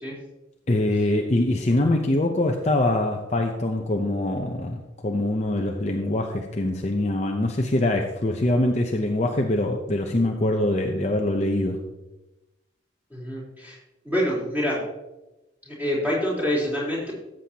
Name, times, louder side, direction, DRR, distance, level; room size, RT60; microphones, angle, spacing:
voice 1, 0.7-11.8, left 1 dB, 35° left, 2 dB, 0.7 m, -24 dB
voice 2, 13.1-13.8 14.0-14.9 15.7-17.1, equal, 10° right, -7 dB, 3.8 m, -26 dB
13.5 x 7.6 x 2.9 m, 0.99 s
head